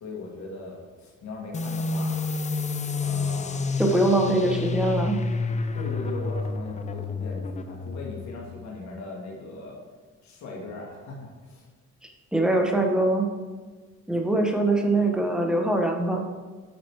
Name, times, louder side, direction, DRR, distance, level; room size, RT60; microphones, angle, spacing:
voice 1, 0.0-2.2 3.0-3.6 4.2-4.7 5.7-9.8 10.2-11.7 15.0-15.2, left 2 dB, 70° left, -2 dB, 1.5 m, -39 dB
sound 1, 1.5-8.8, left 4 dB, 25° left, 0.4 m, -29 dB
voice 2, 3.8-5.2 12.0-13.3 14.1-16.3, right 2 dB, ahead, 2 dB, 0.9 m, -23 dB
8.6 x 3.0 x 4.5 m, 1.4 s
cardioid pair, 90°, 30 cm